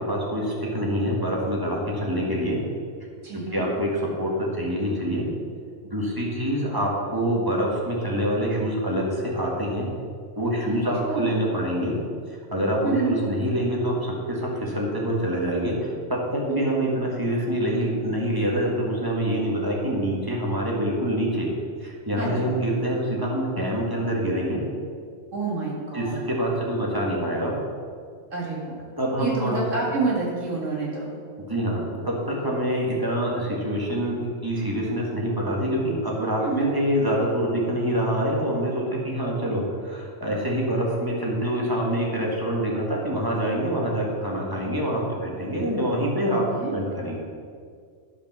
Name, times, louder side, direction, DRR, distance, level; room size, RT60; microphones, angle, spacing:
voice 1, 0.1-2.6 3.5-3.9 4.2-5.3 5.9-9.9 10.4-11.9 12.5-21.5 21.8-24.6 25.9-27.5 29.0-29.6 31.5-46.4 46.7-47.2, equal, 15° right, -3 dB, 1.7 m, -26 dB
voice 2, 3.2-3.6 10.7-11.4 12.8-13.1 16.5-16.7 22.2-22.5 25.3-26.2 28.3-28.8 29.2-31.1 36.4-36.7 46.3-46.7, right 3 dB, 85° right, -4 dB, 2.3 m, -28 dB
10.5 x 5.1 x 6.1 m, 2.1 s
omnidirectional pair, 1.3 m